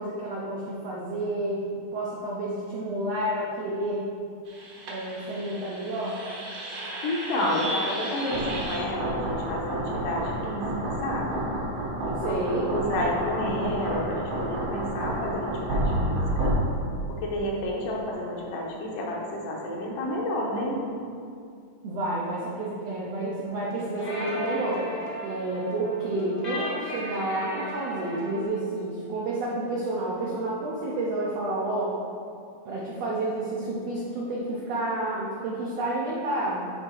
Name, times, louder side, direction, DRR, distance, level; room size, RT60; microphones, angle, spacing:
voice 1, 0.0-4.1 4.9-6.2 12.2-12.6 21.8-24.8 25.2-32.0 32.6-36.7, right 2 dB, 80° right, -5 dB, 1.4 m, -30 dB
sound 1, 4.5-16.6, right 1 dB, 65° right, 1.4 m, -31 dB
voice 2, 7.0-11.5 12.0-16.6 17.2-20.8, left 1 dB, 75° left, -2 dB, 2.4 m, -30 dB
sound 2, 23.5-28.4, equal, 45° left, 0.6 m, -36 dB
9.9 x 3.6 x 4.5 m, 2.4 s
omnidirectional pair, 4.0 m